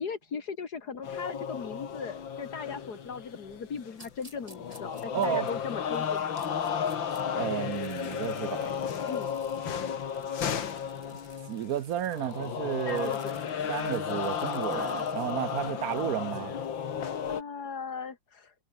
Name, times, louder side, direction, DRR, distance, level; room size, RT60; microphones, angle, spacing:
voice 1, 0.0-6.4 9.1-9.3 12.8-13.3 14.7-15.0 17.3-18.5, left 5 dB, 55° left, 2.7 m, -38 dB
sound 1, 1.0-4.1 4.4-17.4, left 7 dB, 85° left, 2.5 m, -33 dB
sound 2, 3.9-7.2 7.6-16.3, right 1 dB, 15° right, 6.3 m, -57 dB
voice 2, 5.1-5.5 7.3-8.7 9.8-9.9 10.2-10.4 11.1-11.2 11.5-13.1 13.7-16.6, right 10 dB, 65° right, 1.0 m, -32 dB
omnidirectional pair, 2.0 m